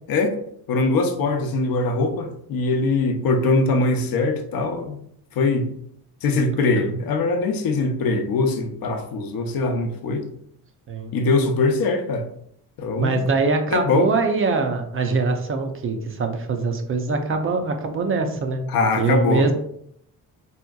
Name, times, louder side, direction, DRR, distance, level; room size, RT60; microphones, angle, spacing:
voice 1, 0.7-5.0 5.4-5.7 6.2-10.2 11.1-12.3 12.8-13.2 13.7-14.1 18.7-19.5, left 3 dB, 70° left, 6 dB, 0.6 m, -22 dB
voice 2, 13.0-18.6 19.0-19.5, right 4 dB, 35° right, 5 dB, 0.4 m, -23 dB
3.5 x 2.8 x 2.2 m, 0.70 s
cardioid pair, 115°, 36 cm